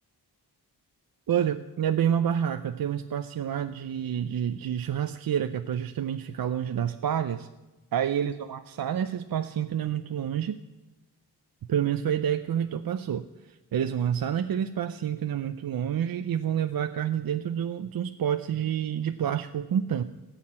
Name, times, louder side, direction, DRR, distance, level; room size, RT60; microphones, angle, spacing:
voice 1, 1.3-7.5 7.9-10.6 11.7-20.0, right 9 dB, 65° right, 9 dB, 0.6 m, -28 dB
17.0 x 5.8 x 8.6 m, 1.1 s
wide cardioid pair, 80°, 39 cm